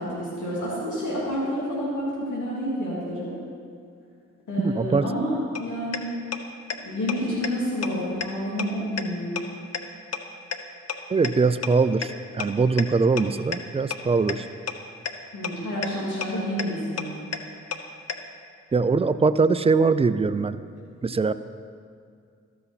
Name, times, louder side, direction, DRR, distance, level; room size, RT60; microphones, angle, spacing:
voice 1, 0.0-3.3 4.5-6.1 6.8-9.4 15.3-17.2, equal, 75° left, -7 dB, 2.6 m, -29 dB
voice 2, 4.6-5.1 11.1-14.5 18.7-20.6 21.0-21.3, right 4 dB, 20° right, 13 dB, 0.4 m, -22 dB
sound 1, 5.5-5.6 5.9-6.0 6.3-6.4 6.7-6.8 7.1-7.2 7.4-7.5 7.8-7.9 8.2-8.3 8.6-8.7 9.0-9.1 9.4-9.5 9.7-9.8 10.1-10.2 10.5-10.6 10.9-11.0 11.2-11.3 11.6-11.7 12.0-12.1 12.4-12.5 12.8-12.9 13.2-13.3 13.5-13.6 13.9-14.0 14.3-14.4 14.7-14.8 15.1-15.2 15.4-15.5 15.8-15.9 16.2-16.3 16.6-16.7 17.0-17.1 17.3-17.4 17.7-17.8 18.1-18.2, left 7 dB, 55° left, 0.7 m, -28 dB
13.5 x 5.7 x 4.1 m, 2.3 s
supercardioid pair, 45°, 30 cm